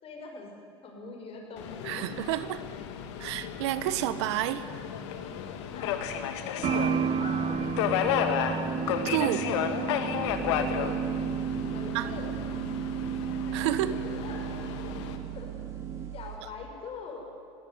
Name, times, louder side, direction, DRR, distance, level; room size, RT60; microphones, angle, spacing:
voice 1, 0.0-0.5 0.8-2.1 5.7-6.1 6.4-6.8 7.2-8.4 9.6-10.1 10.5-11.0 11.7-12.3 13.9-14.7 15.3-15.5 16.1-17.3, left 4 dB, 40° left, 2 dB, 6.3 m, -43 dB
Subway metro underground, 1.6-15.2, left 8 dB, 80° left, 2.0 m, -33 dB
voice 2, 1.8-2.6 3.2-4.7 9.0-9.5 11.9-12.1 13.5-14.0, right 13 dB, 80° right, 14 dB, 1.1 m, -29 dB
sound 1, 6.6-16.1, right 7 dB, 40° right, 0.9 m, -32 dB
sound 2, 10.3-16.4, right 13 dB, 20° right, 5.0 m, -41 dB
20.0 x 17.0 x 9.6 m, 2.7 s
supercardioid pair, 105°, 15 cm